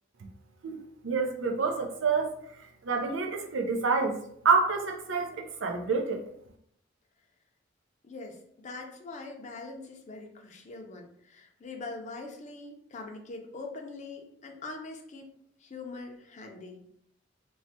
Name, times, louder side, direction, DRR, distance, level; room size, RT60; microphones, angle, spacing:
voice 1, 0.6-2.3 2.8-4.2 4.4-6.2, right 4 dB, 85° right, 3 dB, 0.5 m, -28 dB
voice 2, 8.0-15.3 15.6-16.8, left 3 dB, 40° left, 3 dB, 0.5 m, -43 dB
3.1 x 2.1 x 2.7 m, 0.69 s
head